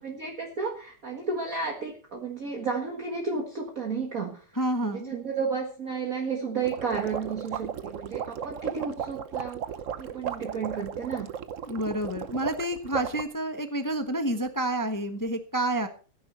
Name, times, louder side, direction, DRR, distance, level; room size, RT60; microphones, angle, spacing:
voice 1, 0.0-4.4 4.8-9.6 10.0-11.3, right 5 dB, 40° right, 1 dB, 1.9 m, -32 dB
voice 2, 4.5-5.1 11.6-15.9, right 1 dB, 15° left, 7 dB, 0.7 m, -29 dB
sound 1, 6.6-13.3, right 8 dB, 60° right, 0.8 m, -35 dB
15.5 x 10.5 x 4.2 m, 0.39 s
omnidirectional pair, 2.4 m